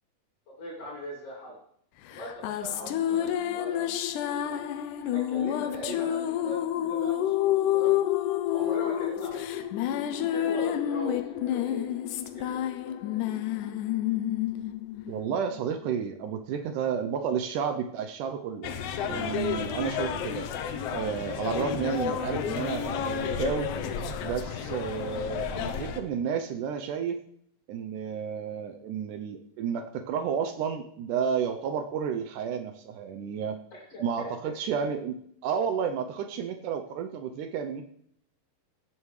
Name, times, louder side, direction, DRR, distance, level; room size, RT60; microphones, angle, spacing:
voice 1, 0.5-1.6 2.1-3.8 4.2-4.6 5.0-7.9 8.5-9.7 10.3-11.9 12.3-13.4 33.7-34.3, left 1 dB, 50° left, -4 dB, 3.5 m, -40 dB
sound 1, 2.1-15.8, left 12 dB, 90° left, 2.2 m, -29 dB
voice 2, 15.1-18.7 19.1-20.5 20.9-23.7 24.2-27.2 27.7-33.6 34.0-37.9, right 7 dB, 85° right, 6 dB, 2.3 m, -31 dB
sound 2, 18.6-26.0, left 7 dB, 70° left, 1.6 m, -32 dB
17.5 x 9.0 x 3.2 m, 0.68 s
omnidirectional pair, 3.6 m